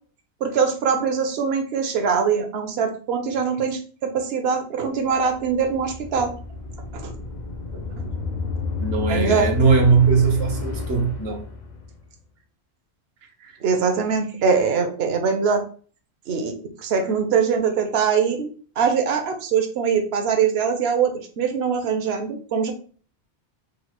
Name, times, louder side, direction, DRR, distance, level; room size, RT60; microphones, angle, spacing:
voice 1, 0.4-6.3 6.9-7.1 8.0-8.1 9.1-9.5 13.6-15.6 16.3-16.5 16.8-18.5 18.8-22.7, right 6 dB, 65° right, 0.9 m, -22 dB
sound 1, 5.1-12.0, left 3 dB, 50° left, 0.6 m, -30 dB
voice 2, 8.8-11.4, right 5 dB, 90° right, 1.2 m, -19 dB
3.9 x 2.4 x 4.3 m
omnidirectional pair, 1.1 m